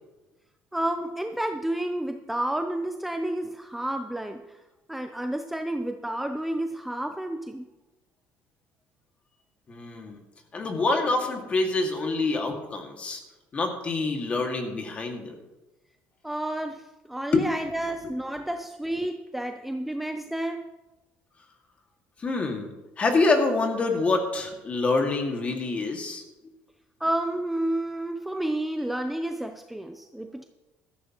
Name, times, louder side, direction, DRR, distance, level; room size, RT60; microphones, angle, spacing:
voice 1, 0.7-4.6 4.9-7.7 16.2-20.7 27.0-30.4, right 1 dB, 5° right, 6 dB, 0.6 m, -30 dB
voice 2, 9.7-10.2 10.5-13.2 13.5-15.4 17.3-17.6 18.0-18.1 22.2-22.7 23.0-26.2, left 3 dB, 30° left, 4 dB, 2.0 m, -26 dB
15.5 x 13.5 x 3.0 m, 1.1 s
cardioid pair, 130°, 5 cm